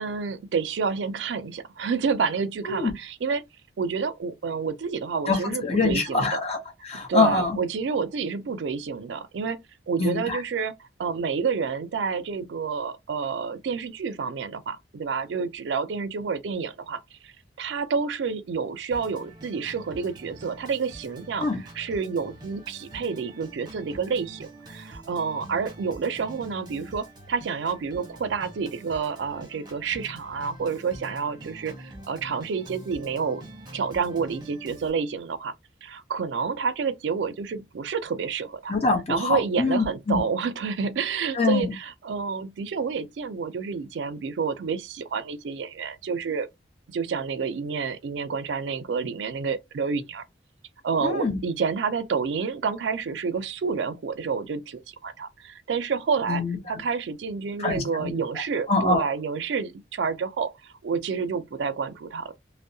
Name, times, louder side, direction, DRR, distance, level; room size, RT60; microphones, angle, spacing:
voice 1, 0.0-3.4 3.8-6.4 7.1-9.6 9.9-10.7 11.0-21.5 21.8-33.4 33.7-35.5 35.8-38.7 39.1-46.5 46.9-50.2 50.8-56.4 56.7-62.3, right 5 dB, 80° right, 0.4 m, -29 dB
voice 2, 5.3-7.6 10.0-10.4 21.4-21.6 38.7-40.2 41.3-41.7 51.0-51.4 56.3-56.8 57.6-58.1 58.7-59.1, left 3 dB, 35° left, 0.7 m, -24 dB
Organ, 18.9-34.9, right 1 dB, 20° right, 0.8 m, -45 dB
2.6 x 2.0 x 2.6 m
head